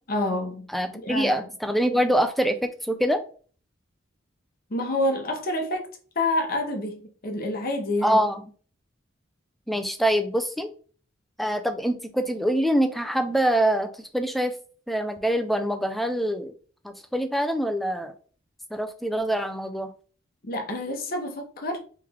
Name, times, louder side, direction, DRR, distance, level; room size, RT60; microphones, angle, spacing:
voice 1, 0.1-1.4 4.7-5.9 6.1-8.2 20.4-21.8, left 1 dB, 45° left, 0.9 m, -28 dB
voice 2, 0.7-3.2 8.0-8.4 9.7-10.7 11.4-14.5 14.9-16.5 16.8-18.1 18.7-19.9, equal, ahead, 0.4 m, -25 dB
3.2 x 3.2 x 3.5 m
head